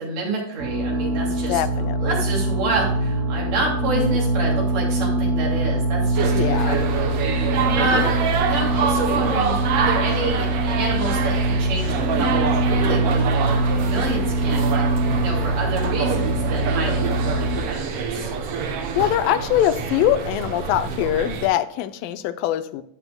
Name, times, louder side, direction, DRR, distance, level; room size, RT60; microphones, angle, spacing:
voice 1, 0.0-1.6 2.0-7.1 7.4-18.3, right 3 dB, 65° right, -2 dB, 4.3 m, -28 dB
sound 1, 0.6-17.6, right 1 dB, 30° right, 2.1 m, -23 dB
voice 2, 1.5-2.2 3.8-4.2 6.3-6.8 7.6-8.1 18.6-22.8, left 12 dB, 80° left, 12 dB, 2.3 m, -23 dB
sound 2, 6.1-21.5, right 6 dB, 80° right, 1.3 m, -26 dB
16.5 x 5.9 x 2.3 m, 0.73 s
omnidirectional pair, 4.0 m